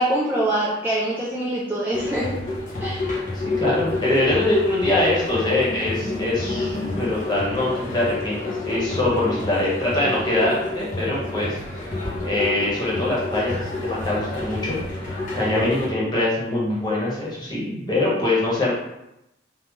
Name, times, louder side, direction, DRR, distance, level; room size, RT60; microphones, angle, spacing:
voice 1, 0.0-2.4 2.8-3.1, right 1 dB, 10° right, -6 dB, 0.4 m, -24 dB
sound 1, 1.9-15.9, left 2 dB, 45° left, 0.8 m, -29 dB
voice 2, 3.3-11.6 12.2-14.8 15.1-18.7, left 2 dB, 25° left, -6 dB, 1.0 m, -23 dB
3.7 x 2.3 x 3.1 m, 0.88 s
head